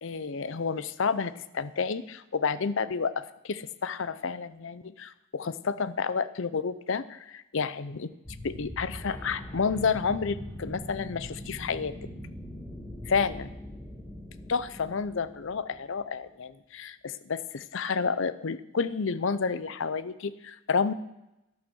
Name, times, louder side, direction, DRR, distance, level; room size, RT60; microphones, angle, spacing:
voice 1, 0.0-8.1 8.4-11.9 13.1-13.5 14.5-20.9, left 5 dB, 60° left, 15 dB, 0.6 m, -30 dB
sound 1, 8.2-16.0, equal, 10° left, 1.6 m, -42 dB
11.5 x 11.0 x 6.2 m, 0.91 s
head